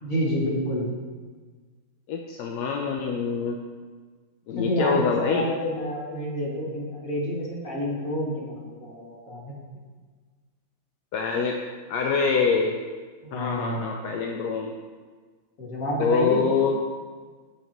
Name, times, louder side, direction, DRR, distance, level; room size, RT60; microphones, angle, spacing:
voice 1, 0.0-0.9 4.6-9.6 13.2-14.0 15.6-16.4, equal, 40° left, -5 dB, 2.4 m, -29 dB
voice 2, 2.1-3.6 4.5-5.5 11.1-11.6 11.9-12.8 13.3-14.7 16.0-16.8, left 5 dB, 65° left, 1 dB, 1.1 m, -25 dB
16.5 x 5.7 x 3.0 m, 1.5 s
omnidirectional pair, 2.2 m